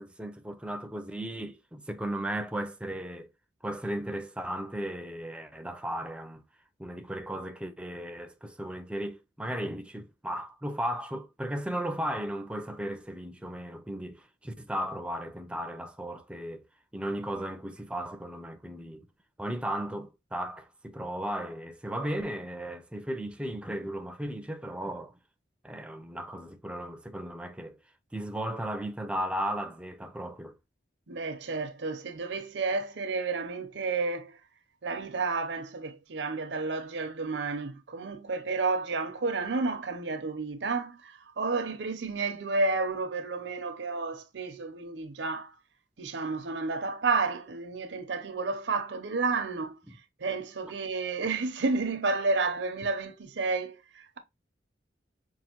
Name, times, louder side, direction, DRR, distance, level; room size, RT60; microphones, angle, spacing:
voice 1, 0.0-3.3 3.6-6.4 6.8-16.6 16.9-19.1 19.4-25.1 25.6-27.8 28.1-30.6 50.6-50.7, right 1 dB, 5° right, 0.5 m, -35 dB
voice 2, 31.1-34.4 34.8-45.5 46.0-49.8 50.2-54.2, right 3 dB, 80° right, 0.7 m, -31 dB
5.4 x 2.6 x 2.9 m
head